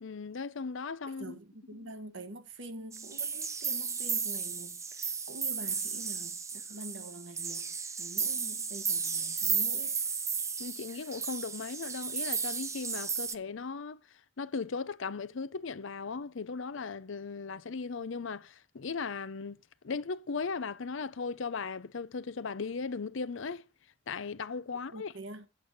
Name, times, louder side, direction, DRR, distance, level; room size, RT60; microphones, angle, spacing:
voice 1, 0.0-1.4 1.8-1.9 10.6-14.0 14.4-23.7 24.1-25.1, left 4 dB, 65° left, 0.6 m, -37 dB
voice 2, 1.2-10.0 24.9-25.5, right 1 dB, 60° right, 1.4 m, -46 dB
sound 1, 2.9-13.3, right 6 dB, 15° right, 0.5 m, -34 dB
8.8 x 8.1 x 6.5 m
head